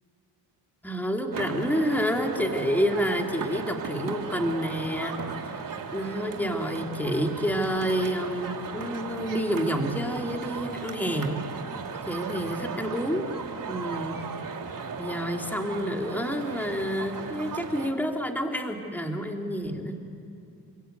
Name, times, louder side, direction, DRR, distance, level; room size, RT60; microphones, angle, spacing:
voice 1, 0.8-11.4 12.1-13.3 13.7-14.2 15.0-20.0, equal, 5° left, 3 dB, 2.6 m, -29 dB
sound 1, 1.3-17.9, right 5 dB, 50° right, 3.0 m, -36 dB
28.0 x 23.0 x 9.1 m, 2.6 s
cardioid pair, 70°, 43 cm